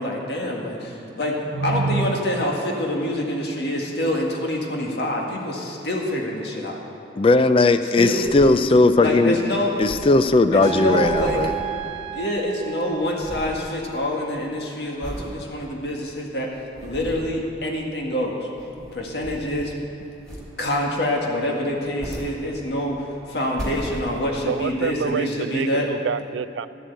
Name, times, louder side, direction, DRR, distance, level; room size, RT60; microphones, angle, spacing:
voice 1, 0.0-1.3 1.6-6.8 8.0-8.2 9.0-9.7 10.5-11.4 12.1-16.5 16.8-18.5 18.9-19.7 20.6-25.9, left 1 dB, 65° left, 0 dB, 1.9 m, -26 dB
voice 2, 1.6-2.2 24.5-26.7, right 5 dB, 85° right, 15 dB, 0.4 m, -27 dB
voice 3, 7.2-9.4 9.8-11.5, left 3 dB, 30° left, 11 dB, 0.4 m, -17 dB
sound 1, 8.0-9.1 9.3-9.4 9.6-12.4 12.7-13.7 14.1-14.4 15.0-15.4 15.9-16.0 16.5-17.4 18.4-19.9 20.2-20.8 21.7-22.9 23.3-24.5 25.1-25.2, equal, ahead, 3.6 m, -37 dB
sound 2, 10.6-13.8, right 9 dB, 35° right, 0.8 m, -32 dB
12.5 x 7.5 x 8.1 m, 2.9 s
head